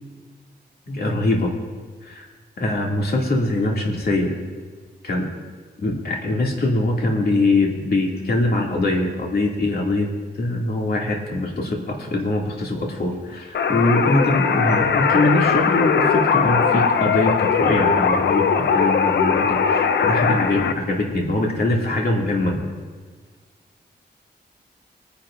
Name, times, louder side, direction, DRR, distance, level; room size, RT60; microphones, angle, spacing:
voice 1, 0.9-1.6 2.0-2.3 2.6-4.4 5.0-5.3 5.8-10.1 10.3-22.5, left 2 dB, 65° left, -1 dB, 2.3 m, -22 dB
sound 1, 13.5-20.7, left 6 dB, 85° left, 0.6 m, -20 dB
22.0 x 10.5 x 2.5 m, 1.5 s
wide cardioid pair, 85°, 17 cm